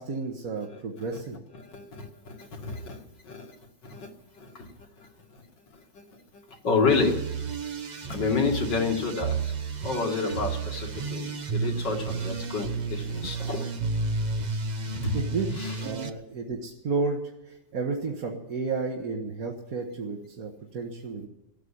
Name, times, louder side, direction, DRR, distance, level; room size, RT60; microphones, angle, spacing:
voice 1, 0.0-1.4 15.1-21.3, right 4 dB, 55° right, 0 dB, 1.8 m, -32 dB
voice 2, 1.5-3.6 3.8-5.4 5.7-6.0 6.3-7.2 8.1-13.7 15.0-15.2 15.5-15.8, left 4 dB, 75° left, 1 dB, 2.7 m, -30 dB
sound 1, 6.9-16.1, right 4 dB, 40° right, 0.7 m, -32 dB
15.5 x 9.1 x 10.0 m, 0.91 s
omnidirectional pair, 1.9 m